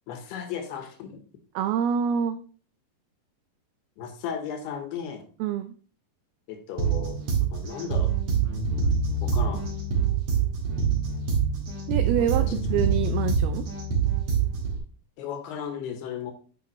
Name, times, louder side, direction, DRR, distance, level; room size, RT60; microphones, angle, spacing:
voice 1, 0.1-1.2 4.0-5.3 6.5-8.1 9.2-9.7 12.2-12.6 15.2-16.3, left 7 dB, 80° left, 6 dB, 3.0 m, -35 dB
voice 2, 1.5-2.4 5.4-5.7 11.9-13.7, right 8 dB, 80° right, 8 dB, 2.3 m, -26 dB
sound 1, 6.8-14.8, right 6 dB, 45° right, 2.0 m, -25 dB
8.6 x 5.9 x 3.1 m, 0.42 s
omnidirectional pair, 4.7 m